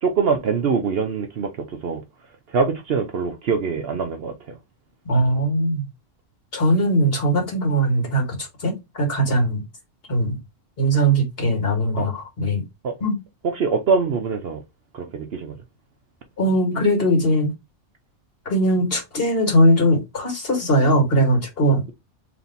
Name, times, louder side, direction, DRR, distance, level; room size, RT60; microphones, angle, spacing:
voice 1, 0.0-2.0 2.5-4.3 12.0-12.1 12.8-12.9 13.5-14.6 14.9-15.6, right 5 dB, 60° right, 0.8 m, -23 dB
voice 2, 5.1-5.8 6.5-9.6 10.1-10.4 10.8-12.6 13.0-13.2 16.4-17.5 18.5-21.8, right 1 dB, 50° left, 1.9 m, -20 dB
3.4 x 2.9 x 4.0 m
omnidirectional pair, 1.3 m